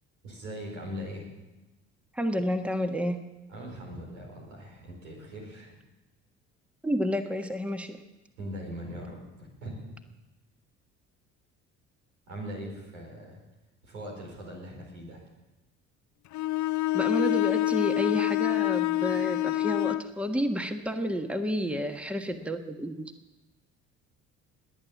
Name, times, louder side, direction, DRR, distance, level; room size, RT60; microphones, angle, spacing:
voice 1, 0.2-1.3 3.5-5.8 8.4-9.9 12.3-13.4 13.8-15.2, equal, 85° right, 0 dB, 4.8 m, -40 dB
voice 2, 2.1-3.2 6.8-8.0 16.9-23.1, equal, 5° right, 7 dB, 1.4 m, -30 dB
Bowed string instrument, 16.3-20.1, left 17 dB, 50° left, 0.7 m, -26 dB
21.0 x 9.1 x 7.2 m, 1.1 s
hypercardioid pair, 60°, 36 cm